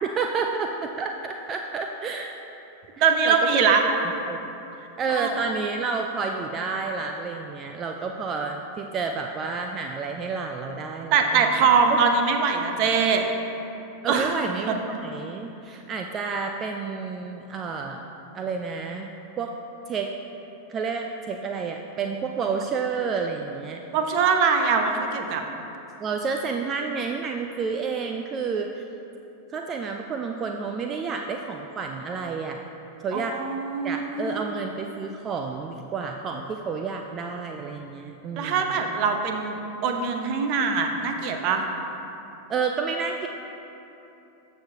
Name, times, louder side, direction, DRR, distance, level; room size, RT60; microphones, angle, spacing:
voice 1, 0.0-2.3 3.0-3.8 4.3-4.5 5.0-11.5 11.9-12.0 14.0-18.0 18.3-19.1 19.4-19.5 19.9-20.1 20.7-23.8 26.0-28.8 29.5-32.6 33.0-33.3 33.8-38.6 42.5-43.3, right 5 dB, 25° right, 3 dB, 0.4 m, -30 dB
voice 2, 3.0-3.8 5.2-5.3 11.1-13.3 14.1-14.3 14.7-14.8 23.9-25.4 33.1-34.4 38.4-41.7, right 5 dB, 45° right, 5 dB, 0.8 m, -22 dB
13.5 x 6.4 x 2.8 m, 3.0 s
figure-of-eight pair, 90°, 0 cm